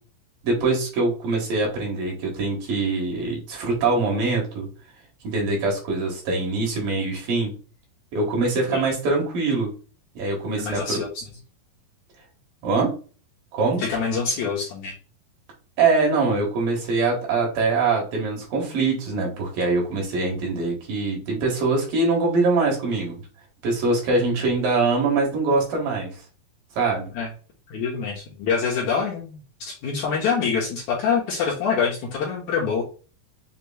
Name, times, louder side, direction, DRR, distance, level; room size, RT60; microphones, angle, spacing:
voice 1, 0.4-4.7 5.2-7.5 8.1-9.7 10.1-11.0 12.6-12.9 13.5-13.9 15.8-23.2 23.6-26.2 26.8-27.1, right 3 dB, 70° right, -1 dB, 3.1 m, -23 dB
voice 2, 10.6-11.2 13.8-14.9 27.1-27.3 27.7-32.8, left 6 dB, 70° left, -2 dB, 1.9 m, -25 dB
6.6 x 2.9 x 2.2 m, 0.36 s
omnidirectional pair, 4.2 m